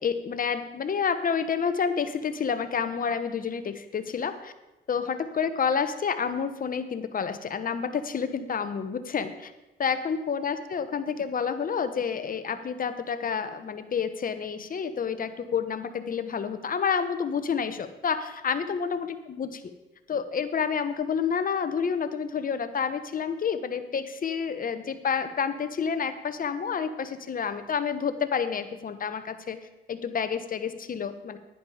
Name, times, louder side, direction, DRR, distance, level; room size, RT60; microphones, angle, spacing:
voice 1, 0.0-4.5 4.9-9.5 9.8-19.6 20.1-29.6 29.9-31.4, left 6 dB, 45° left, 10 dB, 1.1 m, -29 dB
11.0 x 10.5 x 4.9 m, 1.0 s
cardioid pair, 90°, 20 cm